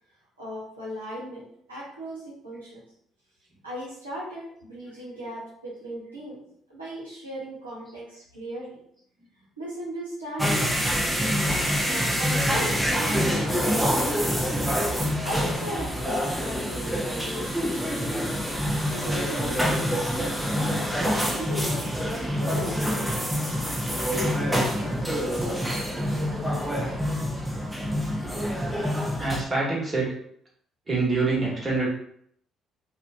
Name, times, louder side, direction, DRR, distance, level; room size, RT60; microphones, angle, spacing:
voice 1, 0.4-2.8 3.6-6.4 6.7-8.8 9.6-11.4 11.8-14.5 15.2-18.2 18.8-21.0 21.3-23.3 23.9-27.1, equal, 85° right, -8 dB, 0.6 m, -38 dB
sound 1, 10.4-29.4, equal, 5° right, 0.5 m, -26 dB
voice 2, 29.2-30.1 30.9-31.9, right 3 dB, 25° right, -5 dB, 1.1 m, -25 dB
2.4 x 2.1 x 2.5 m, 0.67 s
figure-of-eight pair, 45°, 0 cm